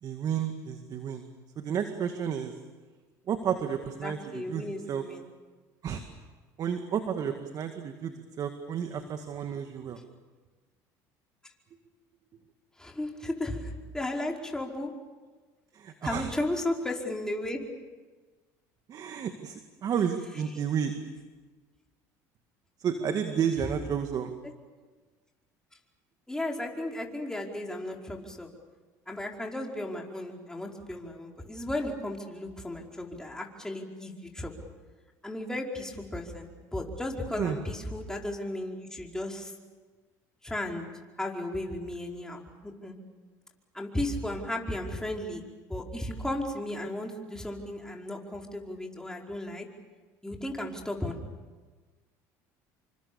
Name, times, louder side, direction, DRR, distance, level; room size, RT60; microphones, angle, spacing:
voice 1, 0.0-1.3 1.6-2.5 3.3-5.1 5.8-6.0 6.6-10.0 15.7-16.4 18.9-21.2 22.8-24.3 37.4-37.6, right 8 dB, 45° right, 7 dB, 2.1 m, -31 dB
voice 2, 4.0-5.2 12.8-14.9 16.0-17.6 24.4-24.5 26.3-28.5 29.1-34.5 35.2-39.5 40.4-40.9 41.2-43.0 43.7-45.4 45.7-49.7 50.2-51.2, left 1 dB, 5° left, 0 dB, 4.8 m, -35 dB
28.5 x 25.0 x 7.1 m, 1.3 s
supercardioid pair, 95°, 8 cm